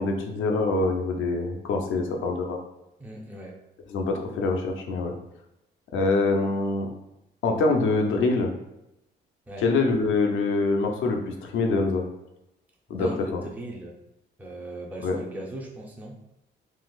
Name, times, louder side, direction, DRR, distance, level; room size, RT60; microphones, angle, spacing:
voice 1, 0.0-2.6 3.9-5.1 5.9-6.9 7.4-8.5 9.6-12.0 12.9-13.4 15.0-15.2, left 3 dB, 80° left, 2 dB, 0.6 m, -25 dB
voice 2, 3.0-3.6 9.5-9.7 13.0-13.9 14.4-16.2, right 1 dB, 10° right, -2 dB, 0.6 m, -39 dB
3.9 x 2.4 x 2.4 m, 0.90 s
cardioid pair, 90°, 20 cm